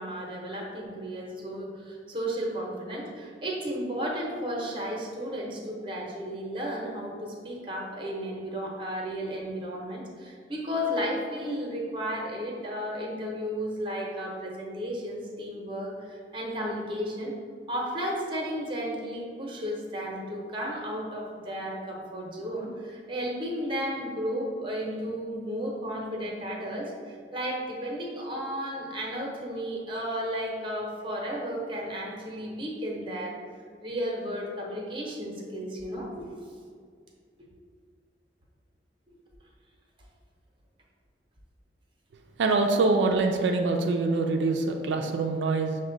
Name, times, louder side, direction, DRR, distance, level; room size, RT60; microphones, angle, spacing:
voice 1, 0.0-17.3 17.7-33.4 33.8-36.3, equal, 30° right, -2 dB, 0.7 m, -33 dB
voice 2, 42.4-45.8, right 3 dB, 85° right, 3 dB, 0.3 m, -24 dB
6.0 x 2.1 x 3.8 m, 2.1 s
head